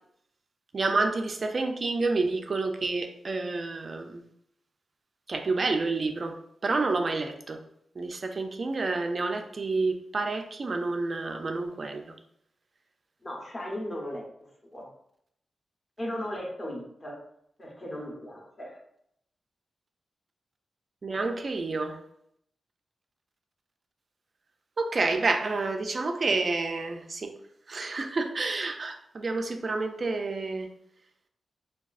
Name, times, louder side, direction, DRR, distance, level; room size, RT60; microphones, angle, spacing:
voice 1, 0.7-4.2 5.3-7.6 8.0-12.2 21.0-22.0 24.8-27.3 27.7-30.7, right 3 dB, 35° right, 5 dB, 0.3 m, -29 dB
voice 2, 13.2-14.9 16.0-17.2 17.6-18.8, equal, 25° left, -1 dB, 0.7 m, -37 dB
4.7 x 2.3 x 2.4 m, 0.72 s
wide cardioid pair, 175°, 0 cm